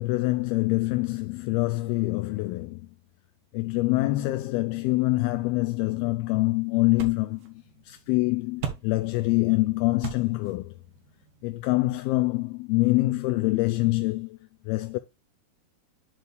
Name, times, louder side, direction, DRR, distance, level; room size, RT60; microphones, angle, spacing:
voice 1, 0.0-2.9 3.5-10.8 11.4-14.4 14.7-15.0, left 20 dB, 85° left, 2.3 m, -25 dB
sound 1, 5.3-12.4, right 7 dB, 60° right, 2.6 m, -42 dB
11.0 x 4.5 x 3.3 m
omnidirectional pair, 4.9 m